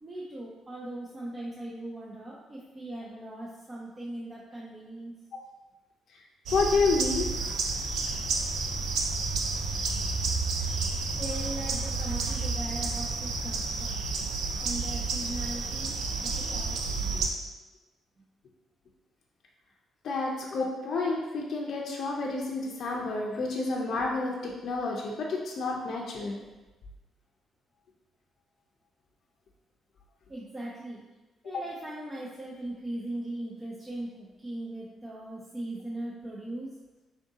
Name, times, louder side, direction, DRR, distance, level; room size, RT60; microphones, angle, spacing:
voice 1, 0.0-5.2 11.1-14.1 14.6-15.9 16.2-17.1 30.3-31.0 31.4-36.8, right 1 dB, 25° right, -5 dB, 0.6 m, -39 dB
voice 2, 6.5-7.3 17.1-17.3 20.0-26.4 31.4-31.6, left 3 dB, 60° left, -2 dB, 0.5 m, -29 dB
sound 1, 6.5-17.3, right 4 dB, 80° right, 0.4 m, -30 dB
3.6 x 2.7 x 3.6 m, 1.1 s
cardioid pair, 90°, 0 cm